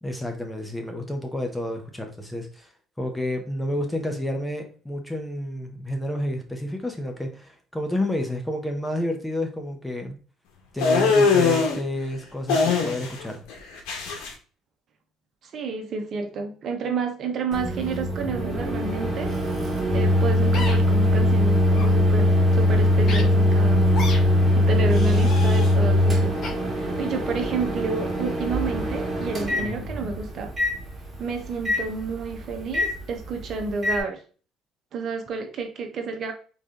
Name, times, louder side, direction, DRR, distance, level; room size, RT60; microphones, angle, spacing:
voice 1, 0.0-2.7 3.0-10.2 10.7-13.4, left 1 dB, 5° left, 4 dB, 0.9 m, -30 dB
sound 1, 10.8-11.8 12.5-13.2 13.5-14.3, left 5 dB, 85° left, 1.2 m, -21 dB
voice 2, 15.4-19.3 19.9-24.0 24.5-26.4 26.7-30.5 31.2-34.2 34.9-36.3, right 4 dB, 50° right, 4 dB, 1.0 m, -30 dB
Microwave oven, 17.5-34.0, left 1 dB, 20° right, 1.8 m, -22 dB
sound 2, 20.5-20.8 21.7-21.9 23.1-23.2 23.9-24.2 24.9-25.7 26.4-26.5, left 3 dB, 55° left, 1.5 m, -33 dB
4.0 x 3.3 x 3.7 m, 0.38 s
cardioid pair, 115°, 0 cm